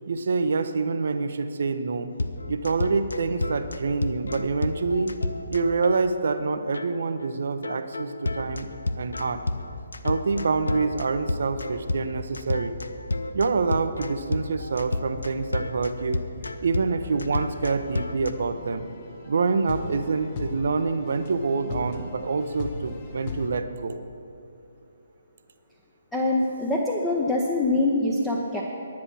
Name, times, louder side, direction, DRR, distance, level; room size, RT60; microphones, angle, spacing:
voice 1, 0.1-2.1 2.5-5.1 5.5-8.7 9.0-9.4 10.0-12.8 13.3-16.2 16.6-18.9 19.3-24.0, right 4 dB, 60° right, 9 dB, 0.7 m, -26 dB
sound 1, 2.2-6.4 6.7-6.9 7.2-7.3 7.6-18.3, left 2 dB, 75° left, 0.6 m, -31 dB
sound 2, 17.0-23.5, left 3 dB, 40° left, 1.2 m, -39 dB
voice 2, 26.1-28.6, left 2 dB, 5° left, -3 dB, 0.9 m, -24 dB
10.5 x 9.6 x 6.1 m, 2.8 s
figure-of-eight pair, 140°, 0 cm